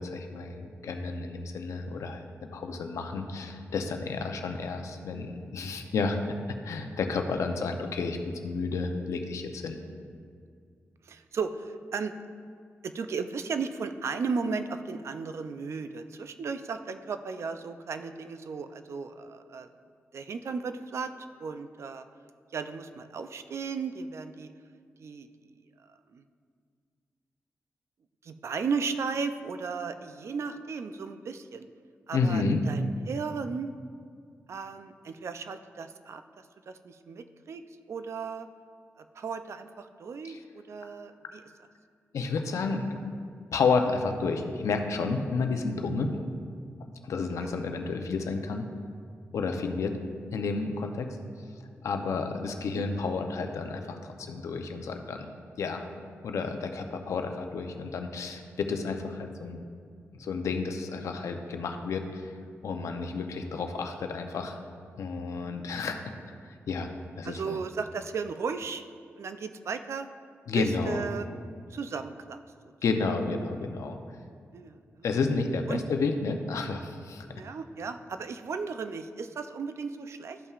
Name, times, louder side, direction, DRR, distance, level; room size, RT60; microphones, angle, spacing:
voice 1, 0.0-2.2 2.5-6.2 6.6-9.8 32.1-32.6 40.2-40.4 42.1-43.0 43.5-46.1 47.0-48.7 49.3-50.0 50.3-51.2 51.8-55.3 55.6-55.9 56.2-59.6 60.1-62.3 62.6-64.6 65.0-66.0 66.7-66.9 67.2-67.6 70.5-71.1 72.8-74.0 75.0-77.2, left 4 dB, 80° left, 5 dB, 0.6 m, -31 dB
voice 2, 11.1-12.1 12.8-19.7 20.1-21.1 21.4-22.0 22.5-24.5 25.0-25.3 26.1-26.2 28.2-31.7 32.1-33.7 34.5-36.2 36.7-37.6 37.9-38.5 39.0-41.4 45.5-45.7 47.4-47.5 52.7-52.9 65.6-65.8 67.2-68.8 69.2-70.1 70.5-71.3 71.7-72.4 74.5-75.0 75.7-75.8 77.3-80.4, right 5 dB, 65° right, 9 dB, 0.4 m, -35 dB
12.5 x 5.5 x 2.4 m, 2.2 s
cardioid pair, 90°, 5 cm